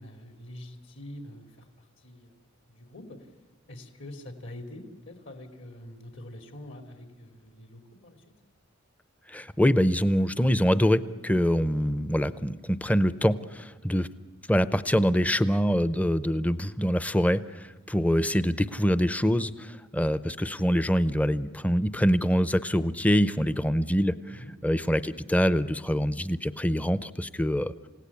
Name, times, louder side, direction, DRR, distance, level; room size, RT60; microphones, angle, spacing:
voice 1, 0.0-2.4 2.7-3.3 3.7-8.2 14.9-15.2 24.3-24.5, left 1 dB, 65° left, 6 dB, 2.7 m, -45 dB
voice 2, 9.3-14.1 14.5-27.7, equal, 5° left, 15 dB, 0.6 m, -25 dB
28.5 x 17.0 x 8.4 m, 1.3 s
head